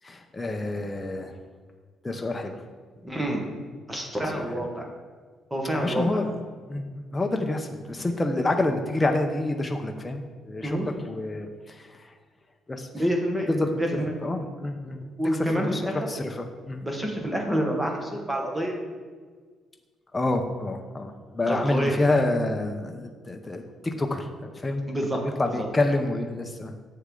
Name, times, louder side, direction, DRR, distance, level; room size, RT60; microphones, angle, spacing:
voice 1, 0.0-1.3 2.0-2.6 4.3-4.7 5.8-6.3 6.7-12.1 12.7-12.9 13.5-16.8 20.1-24.8 25.2-26.7, left 2 dB, 15° left, 4 dB, 0.6 m, -28 dB
voice 2, 3.0-3.4 3.9-4.9 5.5-6.2 10.6-10.8 12.9-13.5 13.8-14.1 15.2-16.0 16.8-18.8 21.5-22.0 24.9-25.2 25.6-25.7, equal, 10° right, 1 dB, 1.3 m, -27 dB
7.6 x 6.6 x 3.8 m, 1.5 s
cardioid pair, 115°, 0 cm